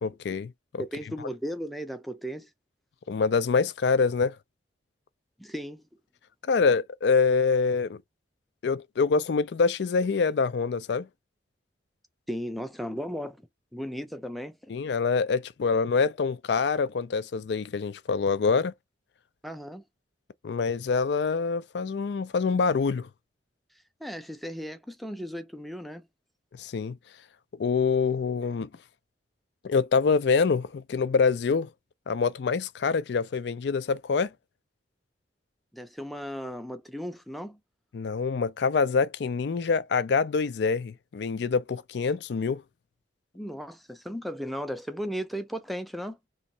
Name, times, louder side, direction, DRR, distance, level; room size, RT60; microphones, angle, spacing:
voice 1, 0.0-0.8 3.1-4.4 6.4-8.0 8.6-11.1 14.7-18.7 20.4-23.1 26.6-27.0 27.6-28.7 29.6-31.7 32.1-34.3 37.9-42.6, left 5 dB, 65° left, 0.4 m, -25 dB
voice 2, 0.8-2.5 5.4-5.8 12.3-14.7 19.4-19.8 24.0-26.1 35.7-37.6 43.3-46.2, equal, ahead, 0.5 m, -36 dB
3.1 x 2.5 x 2.7 m
head